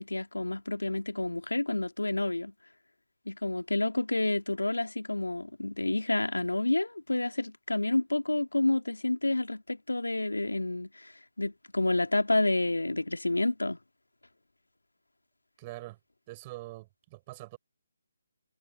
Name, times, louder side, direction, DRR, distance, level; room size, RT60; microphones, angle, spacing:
voice 1, 0.0-2.5 3.3-11.1 11.4-13.8, left 2 dB, 80° left, 2.6 m, -29 dB
voice 2, 15.6-16.0 16.3-17.6, right 20 dB, 25° right, 7.9 m, -44 dB
figure-of-eight pair, 145°, 0 cm